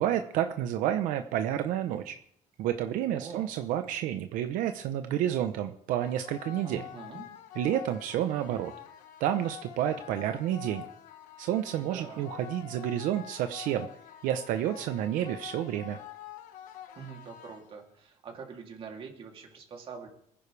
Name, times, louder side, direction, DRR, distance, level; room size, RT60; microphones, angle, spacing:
voice 1, 0.0-2.2 2.6-6.8 7.6-8.7 9.2-10.8 11.4-13.9 14.2-16.0, right 11 dB, 85° right, 8 dB, 0.8 m, -30 dB
voice 2, 3.0-3.5 6.6-7.2 11.8-12.3 17.0-20.1, right 5 dB, 45° right, 1 dB, 3.0 m, -44 dB
sound 1, 6.0-18.0, left 11 dB, 80° left, 1.4 m, -47 dB
23.5 x 10.0 x 3.4 m, 0.68 s
cardioid pair, 135°, 13 cm